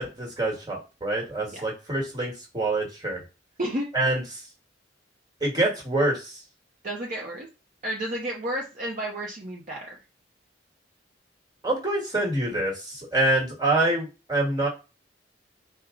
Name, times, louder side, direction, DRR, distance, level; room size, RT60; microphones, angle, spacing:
voice 1, 0.0-3.2 3.9-4.4 5.4-6.4 11.6-14.7, right 2 dB, 20° right, -1 dB, 1.5 m, -26 dB
voice 2, 6.8-7.5 7.8-10.0, right 1 dB, 45° right, -2 dB, 0.8 m, -31 dB
4.6 x 2.2 x 3.7 m, 0.29 s
head